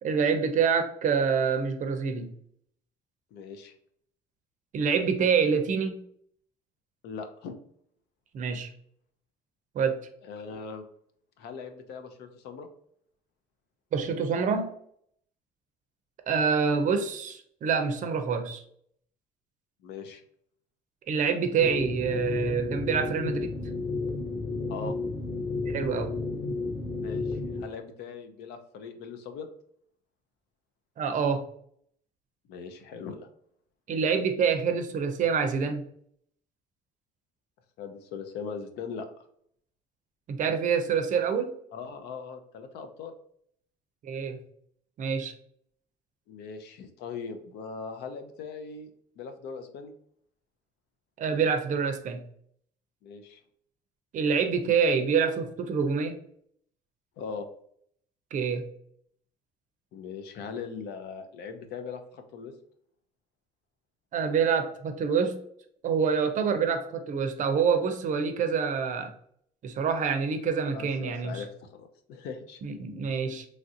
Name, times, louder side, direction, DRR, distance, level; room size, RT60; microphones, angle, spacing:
voice 1, 0.0-2.3 4.7-6.0 8.3-8.7 9.7-10.0 13.9-14.7 16.3-18.6 21.1-23.5 25.7-26.2 31.0-31.4 33.9-35.8 40.3-41.5 44.0-44.4 45.0-45.3 51.2-52.2 54.1-56.2 58.3-58.6 64.1-65.4 65.8-69.1 69.6-71.4 72.6-73.5, right 6 dB, 50° right, 7 dB, 0.5 m, -26 dB
voice 2, 3.3-3.7 7.0-7.5 10.3-10.8 11.4-12.7 19.8-20.2 24.7-24.9 27.0-29.5 32.5-33.3 37.8-39.1 41.7-43.1 46.3-48.9 49.2-49.9 53.0-53.4 57.2-57.5 59.9-62.5 70.7-72.6, left 5 dB, 80° left, 7 dB, 0.5 m, -40 dB
sound 1, 21.6-27.6, left 3 dB, 25° left, 0.5 m, -32 dB
3.2 x 2.5 x 2.6 m, 0.66 s
cardioid pair, 110°, 17 cm